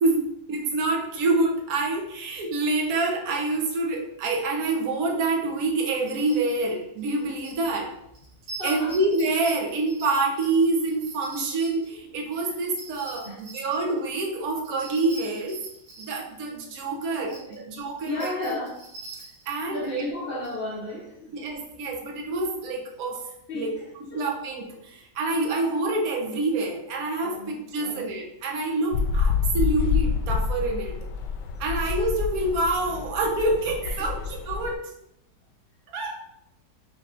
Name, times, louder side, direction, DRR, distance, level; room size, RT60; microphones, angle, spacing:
voice 1, 0.0-7.9 8.6-15.6 16.0-18.3 19.5-19.9 21.3-23.2 23.5-23.7 24.0-31.0 31.6-34.8 35.9-36.2, right 2 dB, 60° right, 0 dB, 1.2 m, -27 dB
sound 1, 5.6-5.7 6.1-6.7 7.0-7.7 8.1-11.9 12.4-14.1 14.6-17.6 17.9-19.9 20.4-20.5, right 3 dB, 85° right, 2.1 m, -44 dB
voice 2, 8.6-9.0 12.4-12.6 13.2-13.4 17.2-17.6 18.0-18.8 19.7-21.3 23.5-24.3 27.2-28.1 33.8-34.1, left 1 dB, 60° left, -2 dB, 0.6 m, -34 dB
sound 2, 28.9-34.8, left 6 dB, 80° left, 1.2 m, -27 dB
6.0 x 3.5 x 2.5 m, 0.79 s
omnidirectional pair, 1.9 m